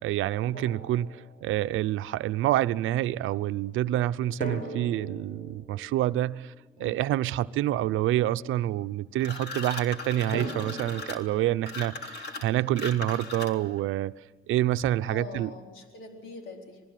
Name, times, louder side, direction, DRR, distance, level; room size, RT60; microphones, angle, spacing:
voice 1, 0.0-6.5 6.8-14.1 14.5-15.5, right 13 dB, 85° right, 0.7 m, -27 dB
Drum, 0.5-1.9 4.4-7.4 10.3-13.2, equal, 40° left, 4.9 m, -42 dB
sound 1, 9.2-13.8, left 3 dB, 55° left, 3.5 m, -38 dB
voice 2, 15.0-16.8, left 3 dB, 85° left, 4.4 m, -43 dB
27.0 x 19.5 x 9.3 m
cardioid pair, 90°, 20 cm